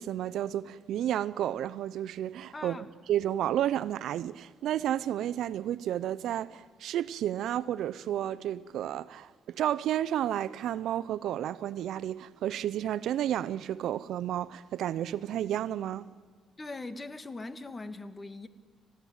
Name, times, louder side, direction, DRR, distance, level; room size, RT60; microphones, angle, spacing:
voice 1, 0.0-16.1, right 11 dB, 80° right, 0.6 m, -31 dB
voice 2, 2.5-2.9 16.6-18.5, left 2 dB, 25° left, 1.6 m, -41 dB
26.5 x 16.0 x 9.4 m
cardioid pair, 90°, 0 cm